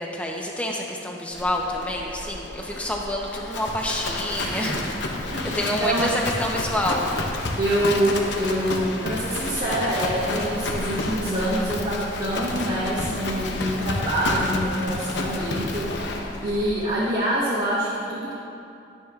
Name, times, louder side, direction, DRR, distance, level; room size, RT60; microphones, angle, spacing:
voice 1, 0.0-4.8 5.5-7.1, left 1 dB, 5° left, -1 dB, 0.8 m, -28 dB
Livestock farm animals working animals, 1.3-16.9, left 2 dB, 75° left, 0.8 m, -30 dB
voice 2, 4.4-4.8 5.3-6.1 7.6-18.3, equal, 50° right, -8 dB, 1.3 m, -26 dB
12.0 x 9.4 x 2.4 m, 2.6 s
head